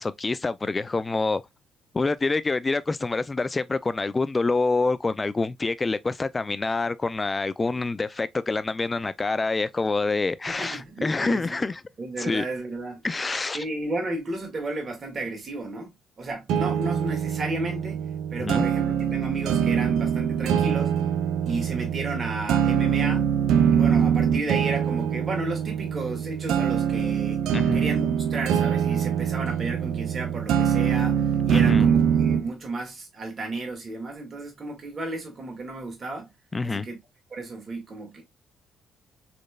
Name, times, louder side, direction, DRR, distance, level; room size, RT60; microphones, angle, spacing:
voice 1, 0.0-1.4 1.9-11.8 12.2-12.5 13.0-13.6 18.4-18.7 27.5-27.8 31.5-31.9 36.5-36.9, left 3 dB, 30° left, 0.4 m, -26 dB
voice 2, 10.5-11.5 12.0-13.0 13.5-18.0 18.3-21.0 21.4-23.3 23.7-27.4 27.7-36.3 36.6-37.0 37.3-38.2, right 2 dB, 40° right, 1.8 m, -33 dB
sound 1, 16.5-32.5, right 8 dB, 80° right, 0.4 m, -24 dB
4.2 x 3.1 x 2.3 m
supercardioid pair, 65°, 0 cm